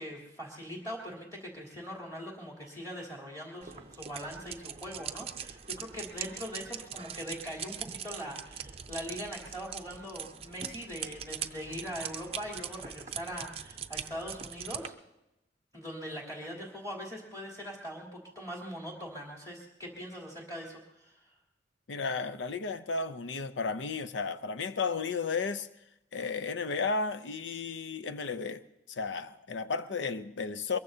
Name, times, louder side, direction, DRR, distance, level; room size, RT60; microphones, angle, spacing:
voice 1, 0.0-14.9 15.7-21.3, equal, 20° left, 3.2 m, -41 dB
sound 1, 3.6-14.9, right 8 dB, 35° right, 0.5 m, -42 dB
voice 2, 21.9-25.7 26.1-28.6 28.9-30.8, left 4 dB, 85° left, 0.6 m, -33 dB
23.0 x 22.0 x 2.8 m
head